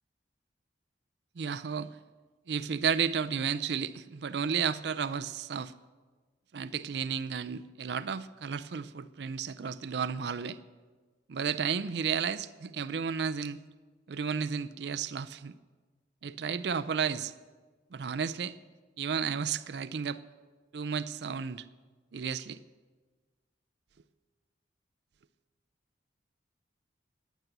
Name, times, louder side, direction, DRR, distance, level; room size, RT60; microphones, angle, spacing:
voice 1, 1.4-2.0 2.5-5.7 6.5-10.6 11.3-13.6 14.1-15.5 16.2-17.3 17.9-18.6 19.0-20.2 20.7-21.6 22.1-22.6, right 6 dB, 65° right, 0.4 m, -32 dB
15.0 x 9.3 x 6.7 m
head